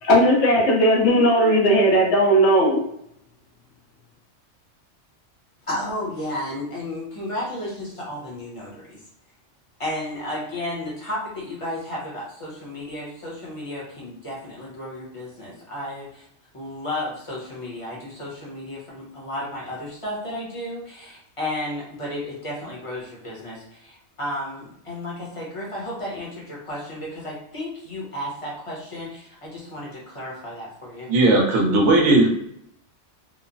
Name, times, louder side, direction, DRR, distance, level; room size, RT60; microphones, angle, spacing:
voice 1, 0.0-2.8, equal, 70° left, -1 dB, 1.0 m, -17 dB
voice 2, 5.7-9.0 9.8-16.3 16.5-31.1, left 1 dB, 30° left, -5 dB, 0.8 m, -33 dB
voice 3, 31.1-32.3, right 2 dB, 70° right, 0 dB, 1.0 m, -17 dB
3.0 x 2.0 x 2.5 m, 0.72 s
omnidirectional pair, 1.3 m